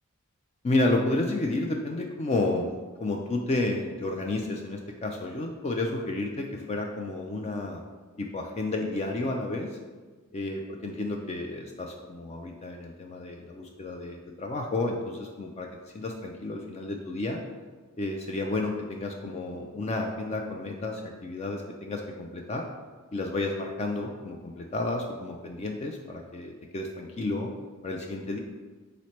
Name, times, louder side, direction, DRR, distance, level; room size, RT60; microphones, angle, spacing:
voice 1, 0.6-2.7 3.0-7.8 8.2-9.7 10.3-15.7 15.9-17.4 18.0-22.6 23.1-27.5 27.8-28.4, left 2 dB, 30° left, 2 dB, 0.4 m, -31 dB
3.9 x 3.1 x 4.3 m, 1.3 s
head